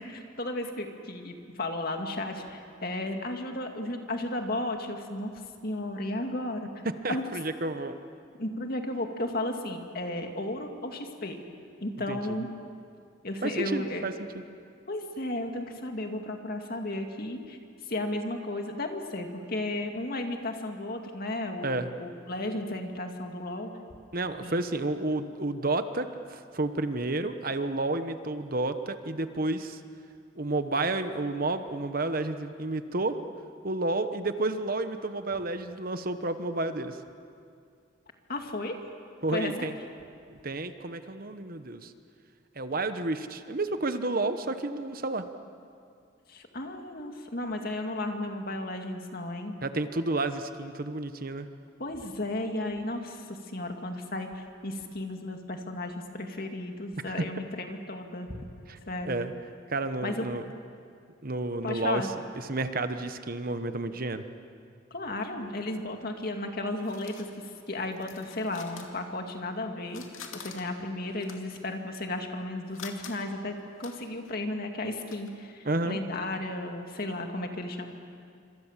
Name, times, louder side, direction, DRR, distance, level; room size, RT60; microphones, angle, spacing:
voice 1, 0.0-5.3 5.6-6.7 7.1-7.2 8.4-11.4 11.8-12.5 13.2-14.0 14.9-17.6 17.9-23.7 24.4-24.6 38.3-38.8 39.3-39.7 46.3-49.6 51.8-58.4 58.9-59.3 60.0-60.3 61.6-62.1 64.9-67.3 67.7-70.0 70.3-77.9, left 1 dB, 50° left, 4 dB, 2.3 m, -34 dB
voice 2, 6.8-7.9 12.1-12.2 13.4-14.4 21.6-21.9 24.1-29.8 30.4-33.2 33.6-37.0 39.2-39.8 40.4-41.9 42.6-45.2 49.6-51.5 57.1-57.2 58.7-58.8 59.1-59.3 59.7-60.5 61.2-64.2 75.6-76.0, right 2 dB, 45° right, 9 dB, 1.1 m, -31 dB
sound 1, 66.2-69.6 69.8-75.3, left 6 dB, 85° left, 2.5 m, -48 dB
27.0 x 25.5 x 7.4 m, 2.4 s
head